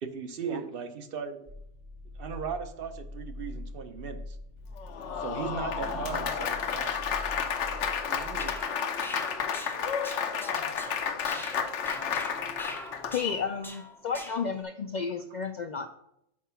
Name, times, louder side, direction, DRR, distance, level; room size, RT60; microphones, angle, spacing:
voice 1, 0.0-1.4 2.2-4.4 5.2-7.0 13.0-13.1, right 6 dB, 55° right, 9 dB, 0.8 m, -37 dB
sound 1, 1.5-8.6, left 2 dB, 35° right, 0.9 m, -43 dB
Applause, 4.8-13.5, left 7 dB, 80° left, 1.0 m, -31 dB
voice 2, 5.6-6.4 8.1-8.5 10.5-11.1, right 5 dB, 75° right, 7 dB, 1.1 m, -42 dB
sound 2, 8.2-14.6, equal, 5° left, 0.4 m, -43 dB
voice 3, 13.1-15.9, left 6 dB, 65° left, 7 dB, 0.4 m, -32 dB
6.1 x 4.7 x 5.6 m, 0.76 s
omnidirectional pair, 1.2 m